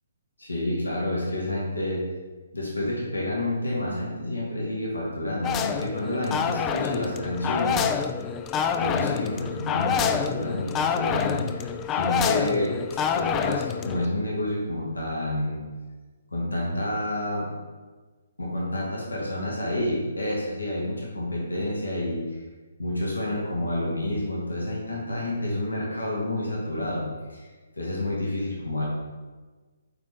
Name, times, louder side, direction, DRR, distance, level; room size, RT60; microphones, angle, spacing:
voice 1, 0.4-2.1 2.5-7.8 8.8-12.8 13.1-15.6 16.3-17.5 18.4-22.4 22.8-28.9, left 1 dB, 85° left, -4 dB, 1.8 m, -29 dB
sound 1, 5.4-14.1, left 7 dB, 20° left, 0.3 m, -27 dB
8.6 x 4.2 x 3.4 m, 1.3 s
figure-of-eight pair, 135°, 0 cm